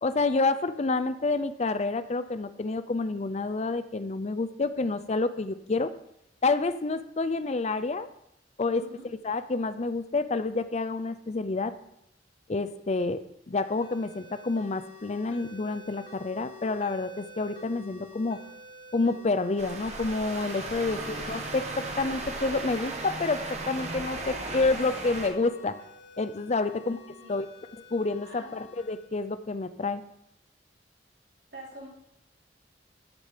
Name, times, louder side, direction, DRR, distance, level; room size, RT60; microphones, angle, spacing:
voice 1, 0.0-5.9 6.4-8.1 8.6-11.7 12.5-13.2 13.5-18.4 18.9-25.8 26.2-27.0 27.3-27.5 27.9-30.0, left 3 dB, 40° left, 12 dB, 0.5 m, -28 dB
voice 2, 8.7-9.0 26.7-26.8 27.2-27.4 28.2-28.5 31.5-31.9, right 2 dB, 65° right, -5 dB, 4.5 m, -47 dB
sound 1, 13.5-29.1, left 2 dB, 75° left, 1.6 m, -49 dB
Camio escombraries, 19.6-25.3, right 2 dB, 40° right, 1.4 m, -36 dB
13.5 x 6.7 x 5.1 m, 0.81 s
head